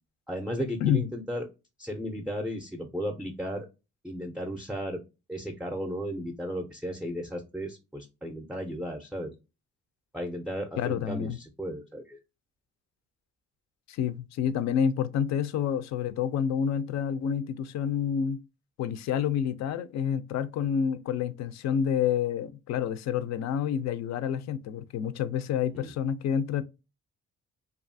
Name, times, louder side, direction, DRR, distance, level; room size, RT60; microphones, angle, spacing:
voice 1, 0.3-1.4 1.8-3.7 4.0-5.0 5.3-9.3 10.1-12.2 25.7-25.9, equal, ahead, 0.4 m, -35 dB
voice 2, 10.8-11.4 13.9-18.4 18.8-26.6, left 8 dB, 65° left, 0.4 m, -28 dB
2.6 x 2.4 x 2.5 m
cardioid pair, 90°, 30 cm